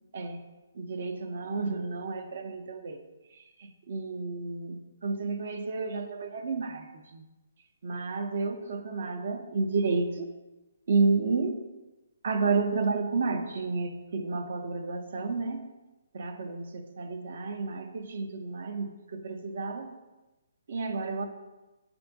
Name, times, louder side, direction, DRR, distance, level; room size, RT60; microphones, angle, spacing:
voice 1, 0.1-0.4 0.7-3.0 3.3-7.3 7.8-10.3 10.9-11.6 12.2-15.7 16.1-20.0 20.7-21.3, right 4 dB, 60° right, 6 dB, 0.8 m, -31 dB
7.6 x 2.7 x 5.8 m, 1.1 s
hypercardioid pair, 155°, 0 cm